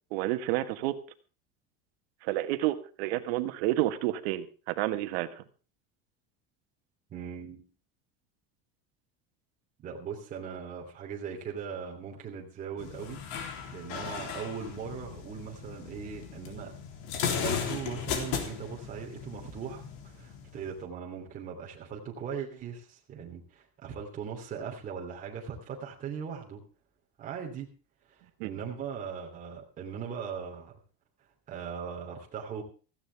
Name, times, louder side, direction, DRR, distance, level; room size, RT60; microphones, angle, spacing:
voice 1, 0.1-1.0 2.2-5.4 28.4-28.5, right 15 dB, 75° right, 9 dB, 1.6 m, -30 dB
voice 2, 7.1-7.6 9.8-13.2 13.7-16.7 17.2-26.6 27.2-27.7 28.1-30.8 31.5-32.6, right 7 dB, 25° right, -2 dB, 3.0 m, -39 dB
sound 1, 12.8-20.8, left 7 dB, 70° left, 3.4 m, -36 dB
17.0 x 15.0 x 3.5 m, 0.36 s
cardioid pair, 170°, 31 cm